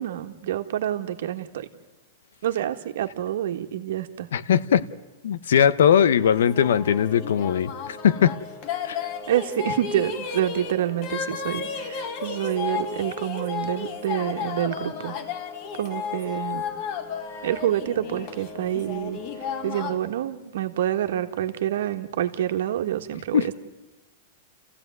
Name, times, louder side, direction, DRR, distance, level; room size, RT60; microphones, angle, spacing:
voice 1, 0.0-1.7 2.4-4.3 9.3-15.2 15.7-16.7 17.4-19.2 19.6-23.5, right 11 dB, 70° right, 1.7 m, -27 dB
voice 2, 4.3-4.9 5.2-8.3 8.8-9.0 23.3-23.5, left 8 dB, 85° left, 0.9 m, -20 dB
sound 1, 6.3-20.0, left 6 dB, 35° left, 1.8 m, -33 dB
29.0 x 15.5 x 9.5 m
supercardioid pair, 165°, 0 cm